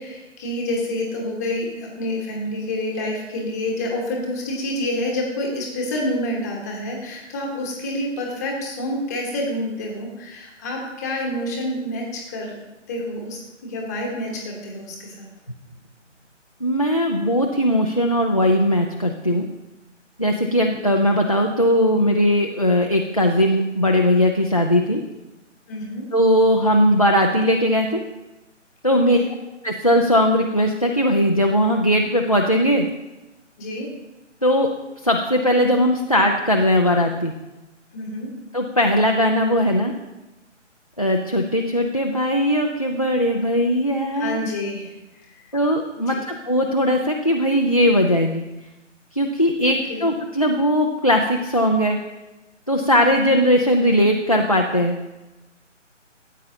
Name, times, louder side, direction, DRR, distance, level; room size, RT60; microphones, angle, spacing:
voice 1, 0.0-12.5 12.9-15.3 25.7-26.0 29.1-29.3 33.6-33.9 37.9-38.3 44.1-44.9 45.4-45.5 46.0-46.2 49.9-50.0, left 1 dB, 15° left, -1 dB, 1.1 m, -28 dB
voice 2, 16.6-19.5 20.2-25.0 26.1-28.0 28.8-29.2 29.6-32.9 34.4-34.7 35.0-37.3 38.5-39.9 41.0-44.4 45.5-48.5 49.1-52.0 52.7-55.0, equal, 30° left, 0 dB, 0.4 m, -19 dB
13.5 x 8.3 x 2.7 m, 1.0 s
figure-of-eight pair, 150°, 37 cm